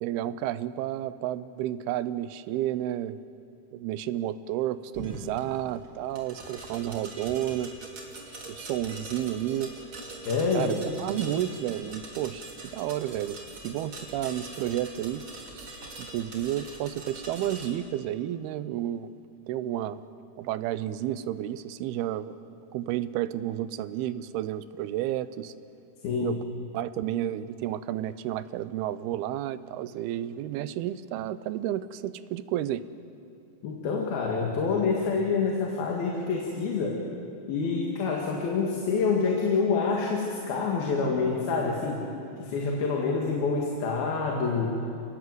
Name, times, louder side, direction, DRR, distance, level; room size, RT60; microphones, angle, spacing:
voice 1, 0.0-3.2 3.7-7.7 8.5-9.7 10.5-13.4 13.6-15.3 15.5-19.1 19.5-20.0 20.4-22.4 22.7-25.5 26.2-26.4 26.7-32.8, right 12 dB, 85° right, 14 dB, 2.7 m, -31 dB
sound 1, 4.9-17.7, right 2 dB, 35° right, 3.5 m, -43 dB
voice 2, 10.3-10.9 26.0-26.4 33.6-37.0 37.5-42.0 42.4-44.7, left 4 dB, 75° left, -1 dB, 3.9 m, -27 dB
29.0 x 19.0 x 7.9 m, 2.6 s
omnidirectional pair, 4.4 m